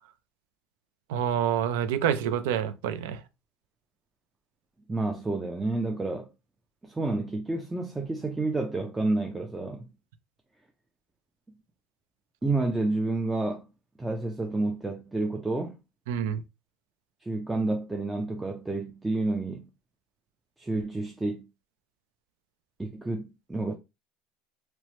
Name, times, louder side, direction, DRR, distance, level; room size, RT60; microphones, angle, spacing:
voice 1, 1.1-3.2 16.1-16.4, right 9 dB, 90° right, 0.4 m, -27 dB
voice 2, 4.9-6.3 6.8-9.9 12.4-13.7 14.0-15.8 17.2-19.7 20.6-21.5 22.8-23.7, right 2 dB, 10° right, 0.4 m, -29 dB
2.9 x 2.0 x 3.0 m
supercardioid pair, 120°, 0 cm